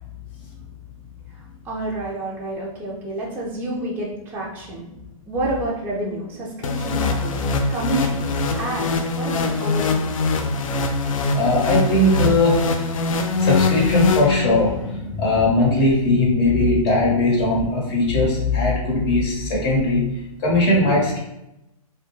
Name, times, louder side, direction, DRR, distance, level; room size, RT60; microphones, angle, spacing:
voice 1, 1.6-4.9 5.3-7.4 7.7-10.2, right 2 dB, 10° right, -4 dB, 0.4 m, -29 dB
sound 1, 6.6-14.8, left 3 dB, 65° left, 0.4 m, -22 dB
voice 2, 11.3-12.8 13.4-20.0 20.4-21.2, left 2 dB, 40° left, -3 dB, 1.1 m, -19 dB
2.1 x 2.1 x 3.0 m, 0.88 s
hypercardioid pair, 125°, 18 cm